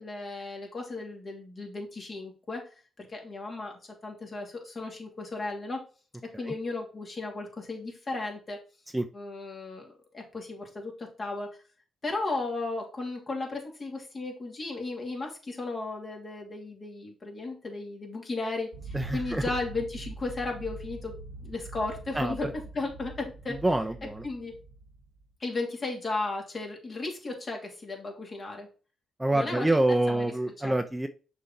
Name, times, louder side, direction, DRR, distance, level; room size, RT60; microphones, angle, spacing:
voice 1, 0.0-2.6 3.0-5.8 6.4-8.6 9.1-11.5 12.0-21.1 21.4-22.5 22.7-23.5 24.2-24.5 25.4-28.7 29.3-29.7 30.1-30.2 30.6-30.7, left 3 dB, 45° left, 1 dB, 2.7 m, -35 dB
sound 1, 18.7-25.2, right 2 dB, 80° right, 0.7 m, -43 dB
voice 2, 18.9-19.4 22.1-22.4 23.5-24.2 29.2-31.1, right 1 dB, 15° right, 7 dB, 0.7 m, -26 dB
6.3 x 4.2 x 4.3 m, 0.36 s
supercardioid pair, 50°, 0 cm